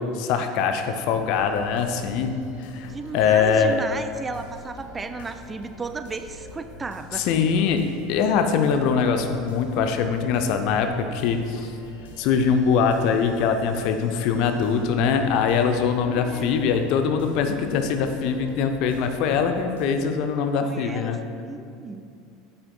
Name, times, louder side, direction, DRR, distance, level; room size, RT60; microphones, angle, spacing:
voice 1, 0.0-2.4 2.6-3.8 7.1-11.7 12.2-21.2, left 6 dB, 55° left, 6 dB, 0.6 m, -23 dB
sound 1, 1.0-19.9, left 2 dB, 70° left, 1.1 m, -45 dB
voice 2, 2.9-7.3 16.1-16.5 20.6-21.2 21.4-22.1, right 4 dB, 20° right, 9 dB, 0.4 m, -35 dB
9.4 x 7.8 x 2.3 m, 2.5 s
figure-of-eight pair, 75°, 0 cm